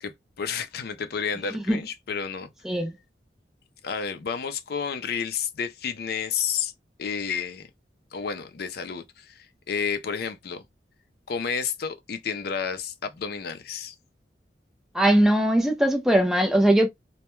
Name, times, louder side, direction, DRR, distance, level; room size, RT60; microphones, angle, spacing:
voice 1, 0.0-2.5 3.8-6.7 7.0-7.7 8.1-10.6 11.3-13.9, left 6 dB, 60° left, 0.4 m, -31 dB
voice 2, 14.9-16.9, right 1 dB, 5° right, 0.5 m, -20 dB
2.2 x 2.1 x 2.9 m
head